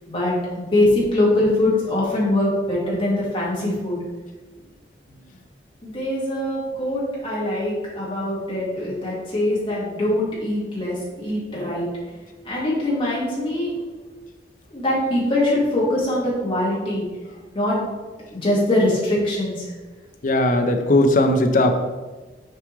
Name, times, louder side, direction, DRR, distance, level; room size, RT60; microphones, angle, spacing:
voice 1, 0.1-4.0 5.8-11.9 12.4-13.7 14.7-17.0 17.5-17.9 18.3-19.7, left 1 dB, 30° left, -7 dB, 1.9 m, -22 dB
voice 2, 20.2-21.7, left 1 dB, 45° left, 5 dB, 0.6 m, -18 dB
6.7 x 4.8 x 3.2 m, 1.3 s
head